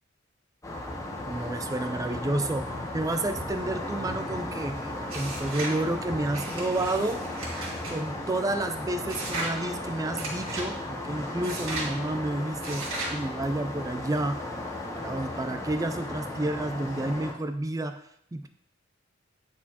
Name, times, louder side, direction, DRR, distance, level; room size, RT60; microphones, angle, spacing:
sound 1, 0.6-17.3, left 1 dB, 15° left, 0.8 m, -35 dB
voice 1, 1.3-7.2 7.9-14.4 14.9-18.0 18.3-18.5, right 1 dB, 15° right, 9 dB, 0.3 m, -30 dB
sound 2, 5.1-5.8 6.3-8.0 9.1-9.6 10.2-10.7 11.4-11.9 12.6-13.2, right 2 dB, 70° right, 1.9 m, -36 dB
9.3 x 4.3 x 2.8 m, 0.72 s
head